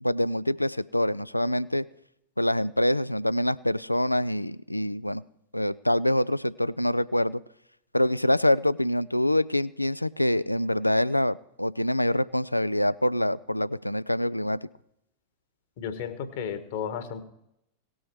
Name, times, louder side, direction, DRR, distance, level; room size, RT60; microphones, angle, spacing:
voice 1, 0.0-1.8 2.4-5.2 5.5-7.4 7.9-14.6, left 1 dB, 85° left, 18 dB, 0.3 m, -25 dB
voice 2, 15.8-17.2, left 7 dB, 50° left, 10 dB, 1.4 m, -33 dB
18.0 x 6.2 x 4.6 m, 0.80 s
figure-of-eight pair, 90°, 0 cm